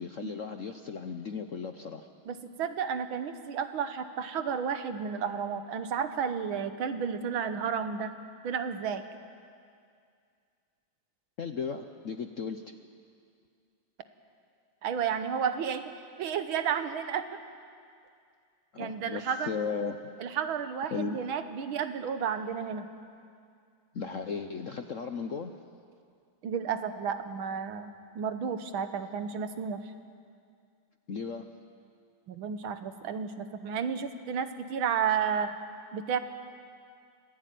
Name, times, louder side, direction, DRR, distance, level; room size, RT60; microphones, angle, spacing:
voice 1, 0.0-2.1 11.4-12.8 18.7-20.0 20.9-21.2 23.9-25.5 31.1-31.5, left 5 dB, 55° left, 7 dB, 0.9 m, -36 dB
voice 2, 2.3-8.1 8.4-9.0 14.8-15.8 16.2-17.2 18.8-19.5 20.2-22.9 26.4-29.9 32.3-35.5 35.9-36.2, right 7 dB, 75° right, 9 dB, 1.9 m, -32 dB
25.5 x 16.5 x 9.3 m, 2.3 s
omnidirectional pair, 2.3 m